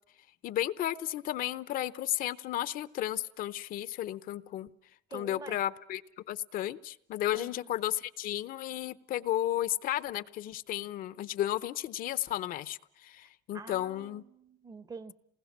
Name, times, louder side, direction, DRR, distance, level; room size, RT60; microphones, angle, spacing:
voice 1, 0.4-4.7 5.1-6.0 6.3-14.2, left 13 dB, 55° left, 0.8 m, -33 dB
voice 2, 5.1-5.6 7.3-7.7 13.5-15.1, right 4 dB, 20° right, 0.9 m, -46 dB
28.0 x 20.0 x 7.3 m
cardioid pair, 150°, 17 cm